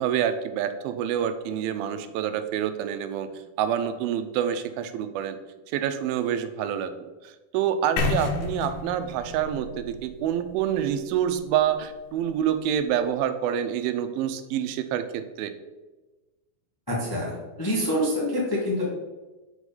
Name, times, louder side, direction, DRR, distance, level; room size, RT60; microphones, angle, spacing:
voice 1, 0.0-5.4 5.7-6.9 7.2-15.5, right 9 dB, 90° right, 10 dB, 2.4 m, -27 dB
sound 1, 8.0-11.9, left 3 dB, 85° left, 2.7 m, -32 dB
voice 2, 16.9-18.8, equal, 25° left, -5 dB, 0.4 m, -26 dB
6.2 x 4.8 x 5.3 m, 1.2 s
omnidirectional pair, 4.1 m